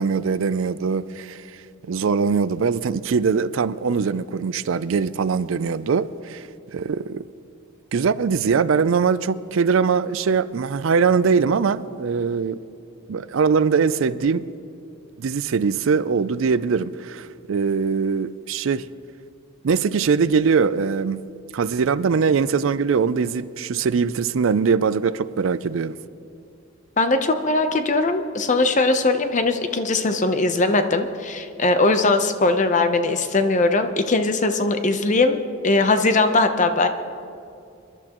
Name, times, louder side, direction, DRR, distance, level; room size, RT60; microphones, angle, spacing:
voice 1, 0.0-1.4 1.9-6.5 6.7-7.2 7.9-12.6 13.1-14.4 15.2-18.9 19.6-26.0, right 5 dB, 70° right, 0.4 m, -22 dB
voice 2, 27.0-35.4 35.6-36.9, left 3 dB, 35° left, 0.8 m, -20 dB
26.0 x 12.0 x 3.0 m
head